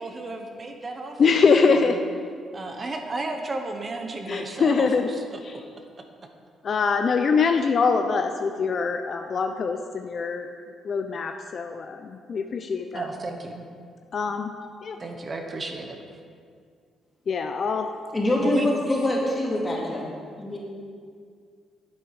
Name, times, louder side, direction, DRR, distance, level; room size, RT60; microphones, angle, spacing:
voice 1, 0.0-1.2 1.6-1.8 2.5-5.4 12.9-13.7 15.0-16.0 18.4-18.7, right 3 dB, 35° right, 4 dB, 1.0 m, -33 dB
voice 2, 1.2-2.0 4.3-5.1 5.4-5.6 6.6-10.5 10.8-13.1 14.1-14.5 14.8-15.0 17.3-17.9, left 5 dB, 50° left, 6 dB, 0.5 m, -23 dB
voice 3, 18.1-20.0 20.4-20.6, left 1 dB, 20° left, -3 dB, 2.4 m, -24 dB
9.7 x 7.8 x 4.9 m, 2.2 s
cardioid pair, 90°, 0 cm